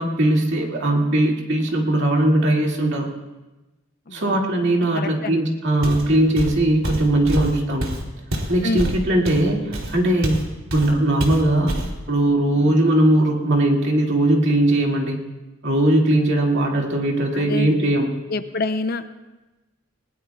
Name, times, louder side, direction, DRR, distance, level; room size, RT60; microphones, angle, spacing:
voice 1, 0.0-3.1 4.1-7.9 8.5-10.5 10.7-11.8 12.1-15.2 15.6-18.1, right 1 dB, 55° right, -1 dB, 2.3 m, -19 dB
voice 2, 4.1-4.4 4.9-5.4 8.6-9.0 12.6-12.8 17.3-17.9 18.3-19.2, left 3 dB, 45° left, 10 dB, 0.6 m, -27 dB
Walk footsteps, 5.8-6.1 6.3-10.4 10.7-10.9 11.2-11.9, right 1 dB, 85° right, 2.6 m, -26 dB
20.5 x 19.0 x 2.3 m, 1.1 s
head